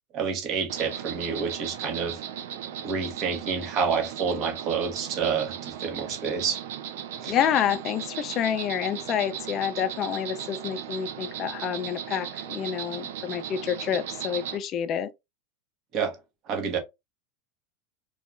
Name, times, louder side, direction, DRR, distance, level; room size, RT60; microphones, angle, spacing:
voice 1, 0.1-2.2 2.8-6.6 7.2-7.3 15.9-16.2 16.5-16.8, right 6 dB, 40° right, 0.8 m, -28 dB
Insect, 0.7-14.6, right 9 dB, 75° right, 0.4 m, -37 dB
voice 2, 7.3-15.1, left 9 dB, 35° left, 0.3 m, -28 dB
3.1 x 2.2 x 2.4 m
supercardioid pair, 145°, 0 cm